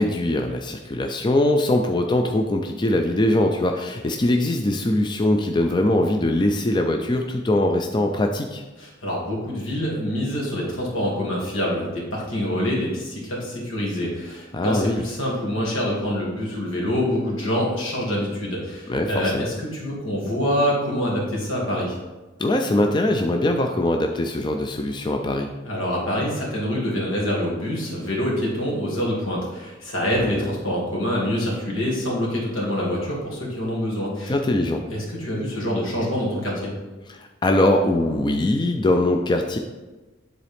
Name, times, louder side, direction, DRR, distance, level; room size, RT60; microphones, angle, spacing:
voice 1, 0.0-8.6 14.5-15.0 18.9-19.5 22.4-25.5 30.1-30.5 34.2-34.8 37.1-39.6, left 1 dB, 20° left, 4 dB, 0.4 m, -22 dB
voice 2, 8.8-22.0 25.6-34.3 34.9-36.7, equal, 85° left, -4 dB, 2.2 m, -26 dB
10.0 x 3.9 x 3.4 m, 1.2 s
head